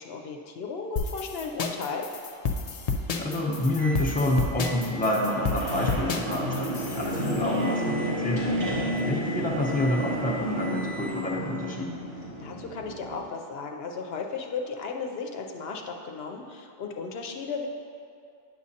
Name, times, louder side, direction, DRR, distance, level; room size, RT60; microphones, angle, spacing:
voice 1, 0.0-2.1 12.4-17.7, left 5 dB, 75° left, 3 dB, 0.8 m, -35 dB
sound 1, 1.0-7.3, left 4 dB, 55° left, 0.4 m, -31 dB
voice 2, 3.2-8.6 9.1-12.0, left 1 dB, 10° left, -3 dB, 0.7 m, -28 dB
Microwave oven, 3.8-4.1 4.6-11.4, right 1 dB, 45° right, 0.9 m, -42 dB
sound 2, 4.4-13.2, equal, 75° right, 2.1 m, -32 dB
9.5 x 6.3 x 2.7 m, 2.4 s
omnidirectional pair, 1.1 m